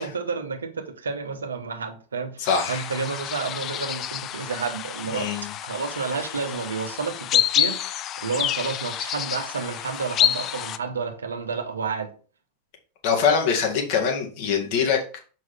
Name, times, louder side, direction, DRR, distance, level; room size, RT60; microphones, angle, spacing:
voice 1, 0.0-5.3 5.6-12.1, right 5 dB, 70° right, 5 dB, 1.1 m, -30 dB
voice 2, 2.4-2.8 5.1-5.5 13.0-15.2, left 6 dB, 45° left, 1 dB, 2.0 m, -23 dB
sound 1, 2.4-10.8, left 11 dB, 30° left, 0.4 m, -28 dB
6.3 x 5.3 x 3.7 m, 0.39 s
figure-of-eight pair, 90°, 0 cm